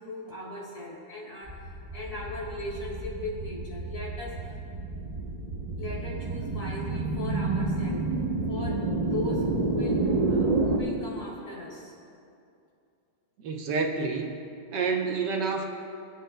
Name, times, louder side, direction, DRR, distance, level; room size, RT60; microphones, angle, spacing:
voice 1, 0.0-4.5 5.8-8.1 8.5-12.0, left 2 dB, 50° left, -5 dB, 3.7 m, -38 dB
sound 1, 1.5-10.8, right 3 dB, 50° right, 0.4 m, -29 dB
voice 2, 13.4-14.4 14.7-15.7, right 4 dB, 70° right, 3 dB, 1.4 m, -28 dB
27.5 x 9.4 x 2.2 m, 2.5 s
omnidirectional pair, 2.0 m